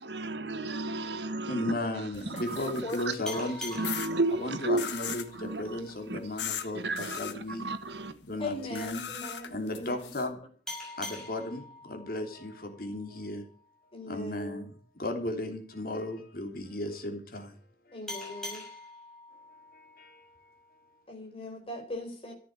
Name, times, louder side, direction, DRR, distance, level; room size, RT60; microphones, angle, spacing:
voice 1, 0.0-3.4 3.7-5.8 6.1-6.2 6.7-8.1, right 2 dB, 80° right, 1.6 m, -33 dB
voice 2, 1.5-3.8 4.3-7.7 8.2-10.4 11.0-13.4 14.1-17.6 17.9-18.0 19.7-20.2 21.2-21.3, left 1 dB, 55° left, 3.2 m, -35 dB
sound 1, 2.1-3.2 3.8-4.1 4.8-5.3 6.4-6.7 7.0-7.3 8.7-10.3, left 8 dB, 90° left, 1.7 m, -38 dB
voice 3, 2.3-3.5 8.4-10.0 13.9-14.7 17.9-18.6 21.1-22.3, left 2 dB, 30° left, 4.7 m, -40 dB
sound 2, 3.2-6.5 10.7-13.9 18.1-21.0, left 2 dB, 5° left, 6.4 m, -45 dB
14.5 x 9.1 x 8.3 m
head